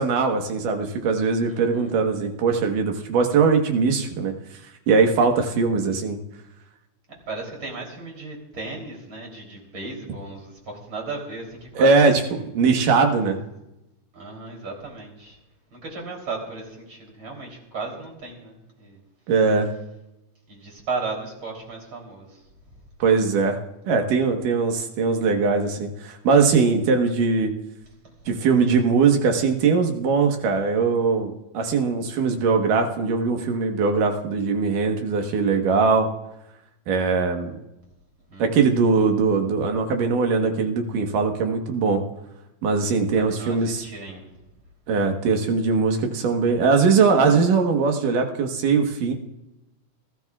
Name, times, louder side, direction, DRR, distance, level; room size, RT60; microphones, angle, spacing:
voice 1, 0.0-4.3 4.9-6.2 11.8-13.4 19.3-19.7 23.0-23.6 23.9-27.5 28.3-36.1 36.9-37.5 38.4-42.0 42.6-43.8 44.9-49.1, right 4 dB, 85° right, 3 dB, 3.0 m, -21 dB
voice 2, 1.5-1.9 7.3-12.4 14.1-15.4 15.7-19.0 20.5-22.4 38.3-38.5 43.1-44.3, right 3 dB, 40° right, 0 dB, 4.0 m, -35 dB
29.0 x 13.0 x 2.4 m, 0.92 s
omnidirectional pair, 3.7 m